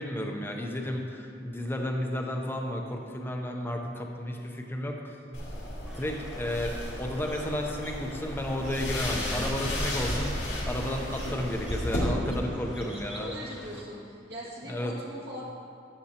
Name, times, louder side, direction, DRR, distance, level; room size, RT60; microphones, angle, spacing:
voice 1, 0.0-5.2 5.9-13.3 14.6-14.9, left 1 dB, 15° left, 2 dB, 0.7 m, -32 dB
sound 1, 5.3-12.0, left 1 dB, 90° left, 2.5 m, -34 dB
sound 2, 5.8-13.8, equal, 5° right, 1.2 m, -47 dB
voice 2, 13.2-15.4, equal, 65° right, -6 dB, 2.2 m, -40 dB
13.0 x 7.7 x 2.9 m, 2.4 s
head